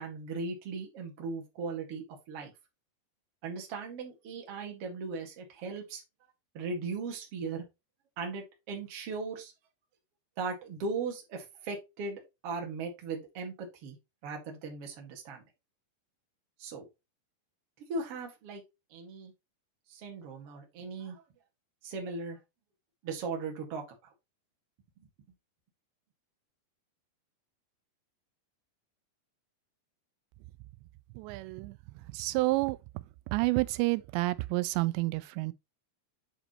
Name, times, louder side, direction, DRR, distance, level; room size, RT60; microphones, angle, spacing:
voice 1, 0.0-2.5 3.4-6.0 6.5-7.6 8.2-9.5 10.4-14.0 14.2-15.5 16.6-16.9 17.8-18.6 18.9-19.3 19.9-21.2 21.8-22.4 23.0-23.8, right 4 dB, 45° right, 2.4 m, -38 dB
voice 2, 31.2-31.8 32.1-32.8 33.3-35.5, right 21 dB, 90° right, 2.8 m, -29 dB
8.6 x 5.1 x 3.1 m
omnidirectional pair, 5.0 m